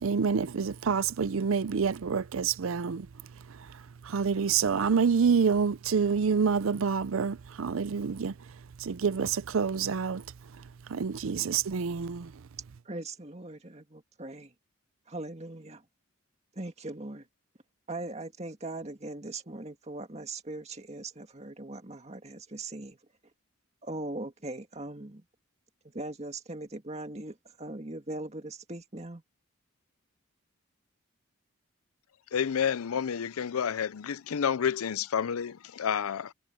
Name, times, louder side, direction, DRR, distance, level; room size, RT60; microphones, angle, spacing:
voice 1, 0.0-3.0 4.1-8.3 8.8-10.2 10.9-12.3, right 6 dB, 70° right, 0.5 m, -27 dB
voice 2, 12.9-14.5 15.1-15.8 16.6-17.3 17.9-23.0 23.8-25.2 25.9-29.2, right 2 dB, 30° right, 2.0 m, -40 dB
voice 3, 32.3-36.3, left 7 dB, 90° left, 0.5 m, -30 dB
head